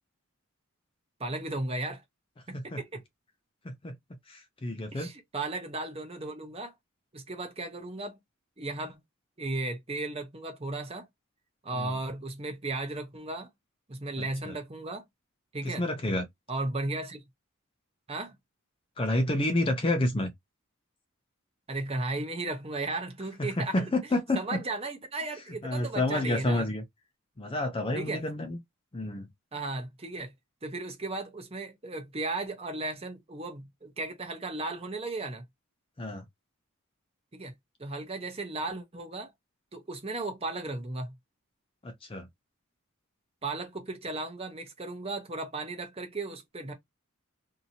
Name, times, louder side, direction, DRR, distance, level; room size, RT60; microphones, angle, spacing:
voice 1, 1.2-2.0 2.5-3.0 4.9-6.7 7.1-8.1 8.6-9.0 9.4-11.1 11.6-13.5 13.9-15.0 15.5-15.9 16.5-17.2 18.1-18.4 21.7-23.9 24.3-26.7 27.9-28.2 29.5-30.3 30.6-35.4 37.3-37.5 37.8-39.3 39.7-41.1 43.4-46.7, right 2 dB, 25° right, 0.8 m, -35 dB
voice 2, 4.3-5.1 11.7-12.0 14.2-14.6 15.6-16.2 19.0-20.3 23.4-24.6 25.6-26.8 27.4-28.6 28.9-29.3 36.0-36.2 41.8-42.3, left 1 dB, 25° left, 0.5 m, -29 dB
2.7 x 2.7 x 2.7 m
head